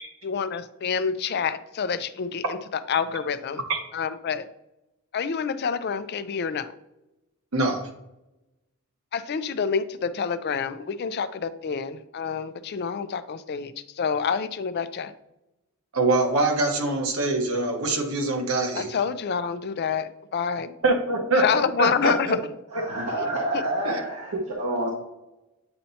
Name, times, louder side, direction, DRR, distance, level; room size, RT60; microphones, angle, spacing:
voice 1, 0.2-2.6 2.9-3.6 3.9-4.5 5.1-6.7 9.1-15.1 18.7-20.7 21.4-22.4 23.2-23.3 23.5-23.6, left 6 dB, 50° left, 12 dB, 0.4 m, -27 dB
voice 2, 7.5-7.8 15.9-18.9 20.8-21.4 21.8-22.4 23.8-24.0, right 2 dB, 70° right, 3 dB, 1.2 m, -24 dB
voice 3, 22.7-24.9, right 1 dB, 85° right, -5 dB, 1.6 m, -28 dB
8.7 x 4.4 x 2.7 m, 0.92 s
head